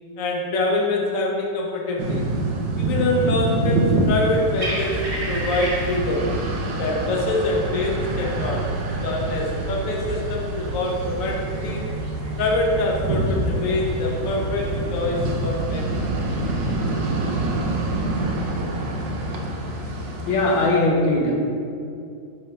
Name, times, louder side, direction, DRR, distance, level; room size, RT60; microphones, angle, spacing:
voice 1, 0.2-2.2 2.8-6.3 6.8-8.7 9.0-11.8 12.4-16.0, left 2 dB, 50° left, -1 dB, 1.3 m, -25 dB
sound 1, 2.0-20.7, right 2 dB, 70° right, 1.5 m, -27 dB
sound 2, 4.1-20.1, equal, 35° right, 1.2 m, -32 dB
voice 2, 20.3-21.3, left 2 dB, 80° left, -1 dB, 1.6 m, -19 dB
8.4 x 3.6 x 5.5 m, 2.4 s
omnidirectional pair, 2.1 m